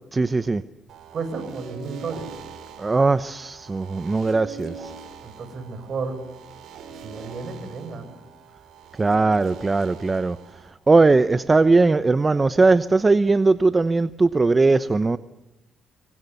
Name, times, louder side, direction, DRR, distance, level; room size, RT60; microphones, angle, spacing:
voice 1, 0.1-0.6 2.8-4.9 9.0-10.4 10.9-15.2, right 3 dB, 25° right, 13 dB, 0.9 m, -19 dB
sound 1, 0.9-10.7, right 6 dB, 70° right, 5.7 m, -43 dB
voice 2, 1.1-2.3 5.2-6.2 7.0-8.1, right 4 dB, 55° right, 7 dB, 7.5 m, -32 dB
26.0 x 23.5 x 8.2 m, 0.92 s
cardioid pair, 90°, 0 cm